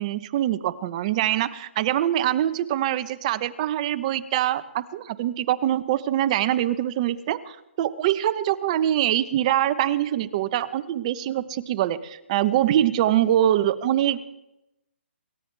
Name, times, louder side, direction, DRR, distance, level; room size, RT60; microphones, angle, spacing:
voice 1, 0.0-14.2, right 12 dB, 35° right, 13 dB, 0.9 m, -24 dB
27.5 x 15.5 x 3.4 m, 0.90 s
hypercardioid pair, 150°, 7 cm